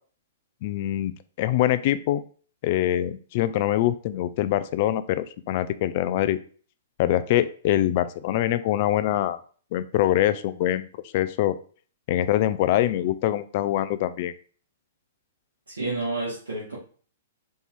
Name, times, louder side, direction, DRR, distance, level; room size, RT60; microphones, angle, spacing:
voice 1, 0.6-2.2 2.6-6.4 7.0-9.4 9.7-10.9 11.1-11.6 12.1-14.3, left 13 dB, 45° left, 13 dB, 0.3 m, -24 dB
voice 2, 15.7-16.8, right 2 dB, 80° right, -8 dB, 1.7 m, -30 dB
4.1 x 2.8 x 3.6 m, 0.43 s
figure-of-eight pair, 115°, 0 cm